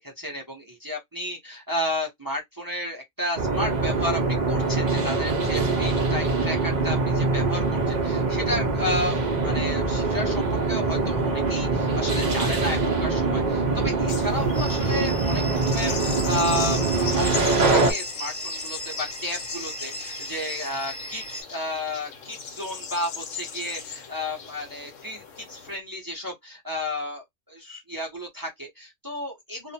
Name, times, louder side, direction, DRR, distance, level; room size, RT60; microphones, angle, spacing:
voice 1, 0.0-4.2 4.5-29.7, left 1 dB, 25° right, 0.5 m, -32 dB
sound 1, 3.4-17.9, right 3 dB, 80° right, 0.4 m, -24 dB
sound 2, 14.1-25.8, left 6 dB, 65° left, 1.0 m, -37 dB
sound 3, 14.5-21.4, right 1 dB, 20° left, 0.8 m, -37 dB
2.5 x 2.1 x 2.7 m
omnidirectional pair, 1.5 m